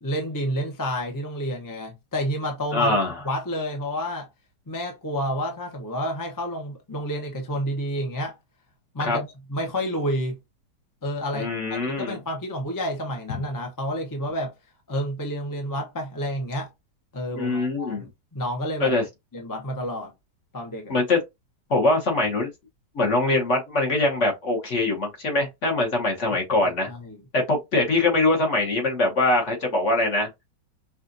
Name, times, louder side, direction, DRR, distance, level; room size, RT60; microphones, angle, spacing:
voice 1, 0.0-3.0 3.2-4.3 4.7-8.3 8.9-10.4 11.0-11.5 11.9-14.5 14.9-16.7 17.1-18.9 19.3-20.1 20.5-20.9 26.9-27.2, equal, 20° left, 0.5 m, -29 dB
voice 2, 2.7-3.1 9.0-9.2 11.3-12.2 17.3-18.1 18.8-19.0 20.9-21.2 21.7-22.5 22.9-26.9 27.3-30.3, left 2 dB, 45° left, 1.4 m, -23 dB
5.5 x 2.5 x 2.6 m
omnidirectional pair, 1.9 m